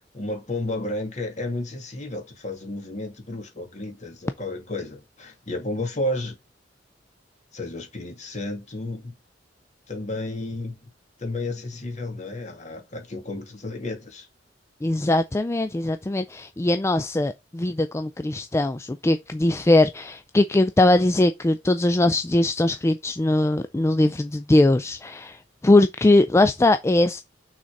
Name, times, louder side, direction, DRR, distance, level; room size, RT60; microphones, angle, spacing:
voice 1, 0.1-6.4 7.5-9.1 9.9-10.7 11.2-14.3, left 2 dB, 40° left, 2.4 m, -32 dB
voice 2, 14.8-27.2, left 2 dB, 15° left, 0.4 m, -21 dB
6.0 x 4.1 x 5.2 m
head